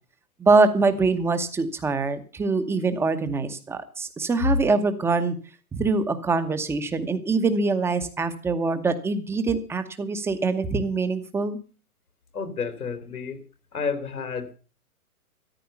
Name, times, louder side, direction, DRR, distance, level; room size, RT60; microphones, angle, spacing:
voice 1, 0.4-5.4 5.7-11.6, right 3 dB, 5° right, 10 dB, 0.9 m, -24 dB
voice 2, 12.3-13.4 13.7-14.5, left 5 dB, 85° left, 10 dB, 3.5 m, -31 dB
14.0 x 10.5 x 7.0 m, 0.37 s
hypercardioid pair, 140°, 43 cm